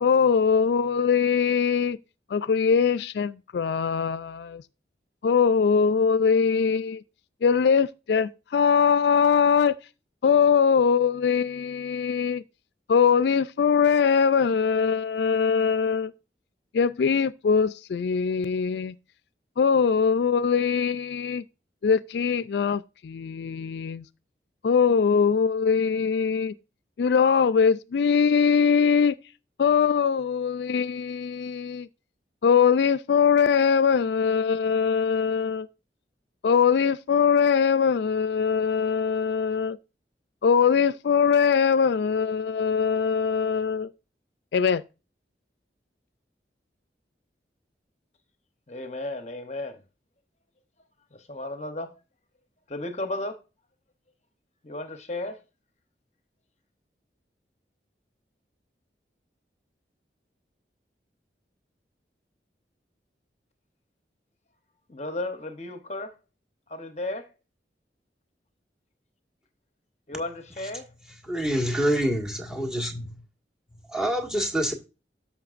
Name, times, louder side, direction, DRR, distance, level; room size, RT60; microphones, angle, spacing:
voice 1, 0.0-2.0 2.3-4.6 5.2-7.0 7.4-9.8 10.2-12.4 12.9-16.1 16.7-18.9 19.6-21.4 21.8-24.0 24.6-26.5 27.0-29.1 29.6-31.9 32.4-35.7 36.4-39.8 40.4-43.9 44.5-44.8, left 6 dB, 70° left, 0.3 m, -22 dB
voice 2, 48.7-49.8 51.1-52.0 52.7-53.4 54.6-55.4 64.9-66.2 66.7-67.3 70.1-70.9, left 2 dB, 40° left, 0.8 m, -34 dB
voice 3, 71.2-73.1 73.9-74.7, equal, 5° right, 1.8 m, -26 dB
13.5 x 5.6 x 2.5 m
head